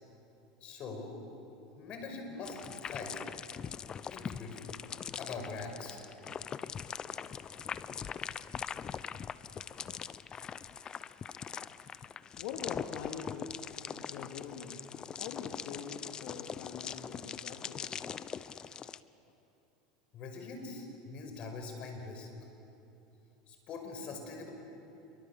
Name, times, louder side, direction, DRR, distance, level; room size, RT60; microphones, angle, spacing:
voice 1, 0.6-1.1 1.8-3.2 4.1-4.7 5.2-6.0 20.1-22.3 23.5-24.5, left 3 dB, 45° left, 4 dB, 5.4 m, -43 dB
sound 1, 2.4-19.0, left 7 dB, 30° left, 0.7 m, -42 dB
voice 2, 12.4-18.1, left 7 dB, 65° left, 2 dB, 2.3 m, -44 dB
28.0 x 23.5 x 7.4 m, 2.9 s
supercardioid pair, 115°, 3 cm